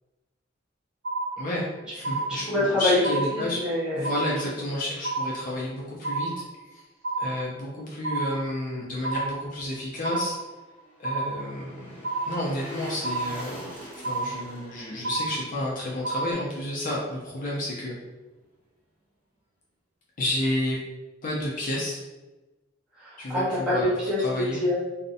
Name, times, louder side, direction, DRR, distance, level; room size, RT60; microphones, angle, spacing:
sound 1, 1.0-1.7 2.0-2.7 3.0-3.7 4.0-4.7 5.0-5.7 6.0-6.7 7.0-7.7 8.0-8.7 9.0-9.7 10.0-10.7 11.0-11.7 12.0-12.7 13.0-13.7 14.0-14.7 15.0-15.7 16.0-16.3, right 3 dB, 65° right, 0.6 m, -31 dB
voice 1, 1.4-3.6 3.9-6.8 7.2-10.4 11.0-13.6 14.0-18.0 20.2-20.8 21.2-22.0 23.2-23.9 24.2-24.6, left 1 dB, 45° left, -4 dB, 0.5 m, -31 dB
voice 2, 2.3-3.0 3.3-4.1 23.0-24.7, left 1 dB, 5° right, -11 dB, 1.2 m, -26 dB
sound 2, 9.9-17.1 17.5-17.6, equal, 30° left, 1.3 m, -44 dB
2.5 x 2.0 x 2.6 m, 1.1 s
head